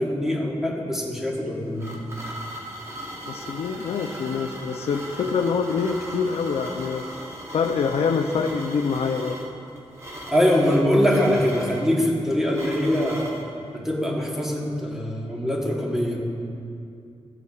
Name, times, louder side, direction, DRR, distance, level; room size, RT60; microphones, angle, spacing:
voice 1, 0.0-1.8 10.3-13.4 13.7-16.2, equal, 5° right, -3 dB, 1.2 m, -23 dB
sound 1, 1.3-13.5, equal, 25° right, 0.9 m, -38 dB
voice 2, 3.3-7.1 7.5-9.4, left 5 dB, 70° left, 6 dB, 0.4 m, -25 dB
14.5 x 8.2 x 2.4 m, 2.6 s
wide cardioid pair, 175°, 11 cm